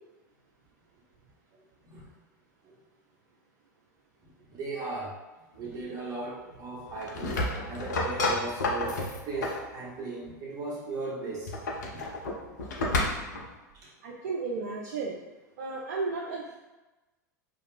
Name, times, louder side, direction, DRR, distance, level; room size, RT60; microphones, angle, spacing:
voice 1, 1.5-2.1 2.6-2.7 4.2-11.5 11.9-12.1 13.7-13.9, right 3 dB, 35° right, -3 dB, 0.8 m, -38 dB
sound 1, 6.9-9.7 11.3-13.5, left 2 dB, 70° left, 0.5 m, -30 dB
voice 2, 14.0-15.2 15.6-16.6, right 4 dB, 60° right, -2 dB, 0.4 m, -33 dB
2.3 x 2.0 x 3.4 m, 1.1 s
figure-of-eight pair, 85°, 10 cm